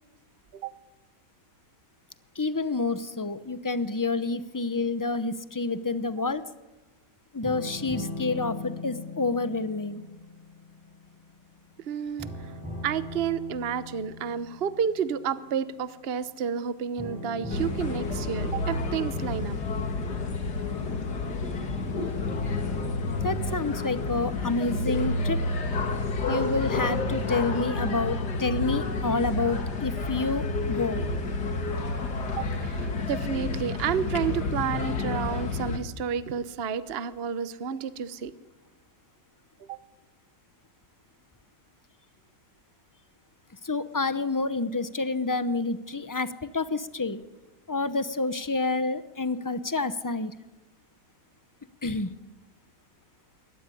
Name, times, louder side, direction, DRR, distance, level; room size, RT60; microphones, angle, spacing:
voice 1, 2.4-6.4 7.3-10.0 23.2-25.4 26.3-31.0 43.6-47.2 47.7-50.3 51.8-52.1, left 3 dB, 20° left, 13 dB, 0.5 m, -28 dB
sound 1, 7.4-11.8 12.2-15.5 17.0-21.0 21.8-23.9, left 2 dB, 5° right, 6.1 m, -40 dB
voice 2, 11.8-12.5 12.8-19.6 32.3-38.3 39.6-39.8, right 7 dB, 45° right, 13 dB, 1.0 m, -31 dB
sound 2, 17.5-35.8, left 3 dB, 75° left, 2.5 m, -30 dB
23.5 x 18.0 x 9.9 m, 1.2 s
omnidirectional pair, 1.7 m